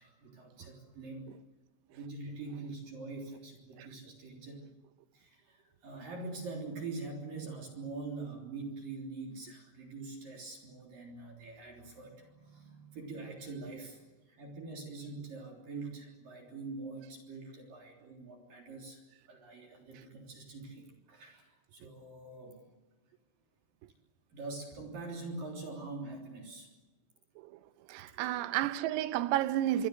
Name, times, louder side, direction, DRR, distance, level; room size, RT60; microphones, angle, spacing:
voice 1, 0.0-1.2 1.9-4.7 5.1-14.0 14.3-19.0 19.3-22.6 24.3-26.7, right 3 dB, 45° right, 4.7 m, -44 dB
voice 2, 27.9-29.9, right 13 dB, 90° right, 3.7 m, -31 dB
25.5 x 23.5 x 7.7 m
omnidirectional pair, 5.9 m